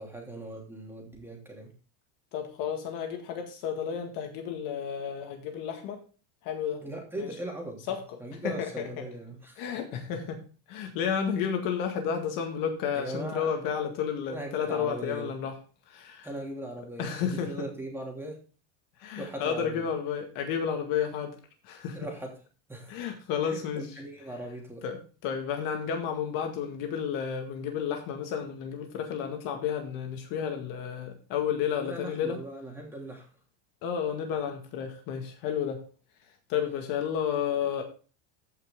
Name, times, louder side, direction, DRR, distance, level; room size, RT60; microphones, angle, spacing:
voice 1, 0.0-1.7 6.8-7.9 8.2-9.6 12.9-13.5 14.3-15.3 16.2-18.4 19.1-19.9 21.9-22.3 22.7-23.0 23.4-24.8 31.8-33.3, right 1 dB, 5° right, 0 dB, 2.9 m, -39 dB
voice 2, 2.3-6.0 6.4-6.8 7.2-7.3 7.9-8.0 8.4-9.0 9.6-10.4 10.7-15.6 15.9-16.3 17.0-17.7 19.0-21.4 21.6-22.0 22.9-24.0 24.8-32.4 33.8-35.8 36.5-37.8, left 7 dB, 45° left, 4 dB, 1.9 m, -31 dB
14.5 x 5.7 x 3.7 m, 0.36 s
supercardioid pair, 155°, 44 cm